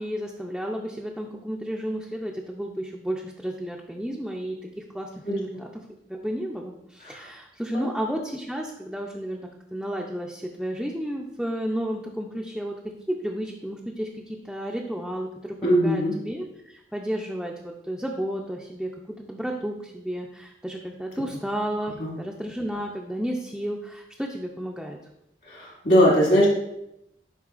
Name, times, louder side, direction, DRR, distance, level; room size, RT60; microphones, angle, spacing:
voice 1, 0.0-5.8 6.1-12.8 13.1-18.9 19.2-25.0, equal, ahead, -2 dB, 0.4 m, -32 dB
voice 2, 15.6-16.1 22.0-22.1 25.4-26.5, equal, 65° left, -4 dB, 2.0 m, -20 dB
11.0 x 3.7 x 2.4 m, 0.83 s
head